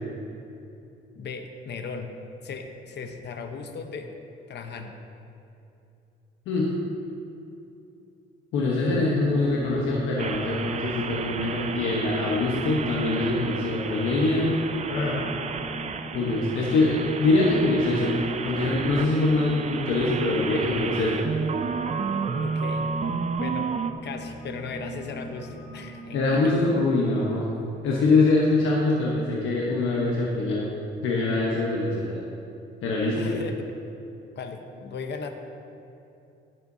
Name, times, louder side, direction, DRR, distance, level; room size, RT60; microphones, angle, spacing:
voice 1, 1.1-2.1 2.4-4.1 4.5-4.9 22.3-22.9 23.4-23.7 24.0-26.4 33.1-33.6 34.4-35.3, left 5 dB, 60° left, 5 dB, 1.0 m, -37 dB
voice 2, 8.5-14.5 14.9-15.2 16.1-18.1 18.4-21.2 26.1-27.5 27.8-30.7 31.0-32.2 32.8-33.4, left 2 dB, 85° left, -4 dB, 1.1 m, -24 dB
sound 1, 9.2-26.9, right 1 dB, ahead, 2.2 m, -39 dB
sound 2, 10.2-23.9, right 5 dB, 35° right, 0.5 m, -32 dB
15.0 x 7.8 x 2.8 m, 2.8 s
cardioid pair, 90°, 20 cm